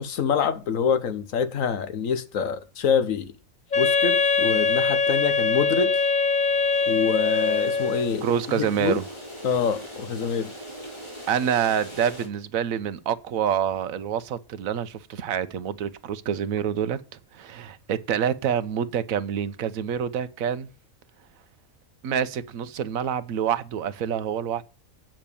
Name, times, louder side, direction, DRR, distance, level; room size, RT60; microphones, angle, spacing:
voice 1, 0.0-3.3 3.8-6.0 6.9-8.3 8.6-9.0 9.4-10.5, left 7 dB, 80° left, 1.4 m, -26 dB
Wind instrument woodwind instrument, 3.7-8.2, left 4 dB, 40° left, 0.8 m, -22 dB
sound 1, 6.3-12.3, equal, 20° left, 3.9 m, -41 dB
voice 2, 8.2-9.0 11.3-17.0 17.3-20.7 22.0-24.6, right 8 dB, 85° right, 1.2 m, -27 dB
8.9 x 6.0 x 6.9 m
omnidirectional pair, 1.4 m